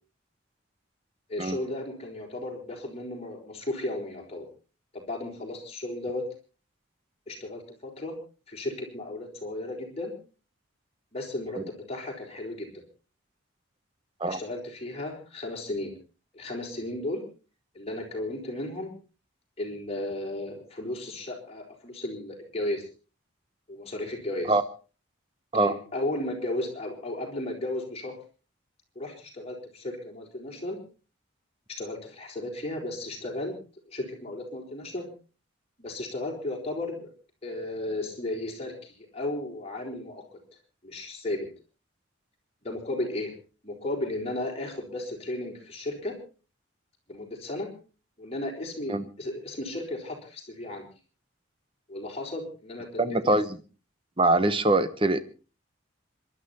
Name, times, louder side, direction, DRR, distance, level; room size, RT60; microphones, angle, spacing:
voice 1, 1.3-4.5 4.9-6.2 7.3-8.2 8.5-10.1 11.1-12.7 14.3-15.9 16.3-17.2 17.7-18.9 19.6-22.8 23.7-24.5 25.5-28.2 28.9-30.8 31.7-33.6 33.9-35.1 35.8-37.1 37.4-40.2 40.8-41.5 42.6-43.3 43.6-46.1 47.1-47.7 48.2-50.9 51.9-53.4, left 1 dB, 30° left, 1 dB, 4.4 m, -34 dB
voice 2, 53.0-53.5 54.2-55.2, right 2 dB, 25° right, 12 dB, 1.0 m, -23 dB
26.5 x 12.0 x 4.3 m, 0.37 s
head